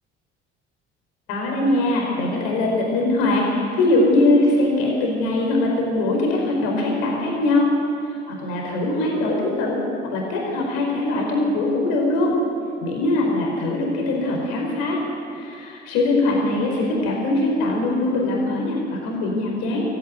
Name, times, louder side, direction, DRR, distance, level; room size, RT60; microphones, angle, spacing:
voice 1, 1.3-7.7 8.3-9.8 10.1-12.3 12.8-15.0 15.3-19.8, left 2 dB, 70° left, -1 dB, 5.0 m, -21 dB
22.0 x 14.5 x 9.7 m, 2.6 s
figure-of-eight pair, 50°, 32 cm